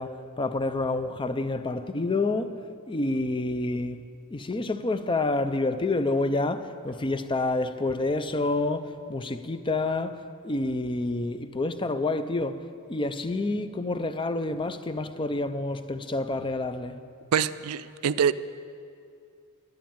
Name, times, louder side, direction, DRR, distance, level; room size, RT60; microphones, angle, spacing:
voice 1, 0.0-2.6 2.9-4.0 4.3-12.6 12.9-17.0, left 2 dB, 20° left, 0.5 m, -28 dB
voice 2, 17.3-18.3, right 8 dB, 80° right, 0.4 m, -25 dB
11.0 x 10.5 x 8.8 m
head